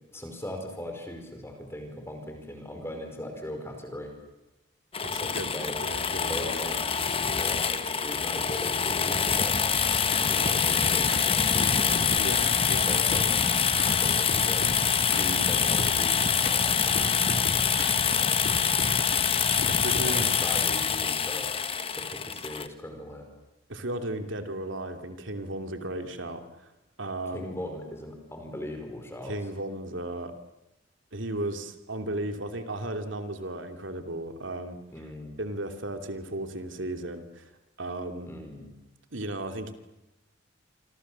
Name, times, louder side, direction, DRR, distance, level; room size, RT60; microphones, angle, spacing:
voice 1, 0.1-4.1 5.2-5.8 6.3-6.8 7.3-9.6 10.2-12.0 12.8-13.4 13.8-14.7 15.1-16.9 18.0-18.4 20.0-21.5 21.9-23.3 27.3-29.3 34.9-35.4 38.3-38.7, left 1 dB, 15° left, 4 dB, 4.7 m, -39 dB
sound 1, 4.9-22.7, left 6 dB, 30° left, 1.1 m, -25 dB
voice 2, 5.0-5.5 5.8-6.7 12.2-12.9 19.7-20.3 23.7-26.7 27.0-27.5 29.3-30.3 31.1-34.8 35.4-37.5 37.8-38.3 39.1-39.7, right 1 dB, 80° right, 6 dB, 2.8 m, -35 dB
sound 2, 10.1-10.6 11.1-11.3 11.6-12.6 13.1-13.3 13.8-13.9 14.3-14.8 15.1-15.3 15.8-16.0 16.5-16.6 17.0-18.0 18.5-19.3 19.6-20.1, left 1 dB, 55° left, 3.7 m, -37 dB
sound 3, 12.9-19.0, right 2 dB, 30° right, 7.5 m, -50 dB
27.5 x 26.0 x 7.5 m, 0.97 s
head